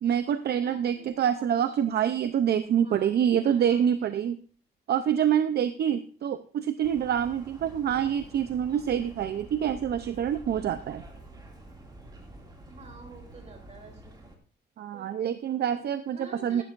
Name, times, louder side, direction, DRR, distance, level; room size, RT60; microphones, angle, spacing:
voice 1, 0.0-4.4 4.9-11.0 14.8-16.6, right 9 dB, 65° right, 11 dB, 0.6 m, -26 dB
voice 2, 0.6-1.8 2.8-4.3 12.7-14.1 14.9-15.1 15.5-16.6, right 3 dB, 40° right, 3 dB, 3.0 m, -49 dB
sound 1, 6.8-14.3, right 2 dB, 20° right, 2.3 m, -48 dB
14.5 x 11.5 x 2.5 m, 0.43 s
wide cardioid pair, 180°, 18 cm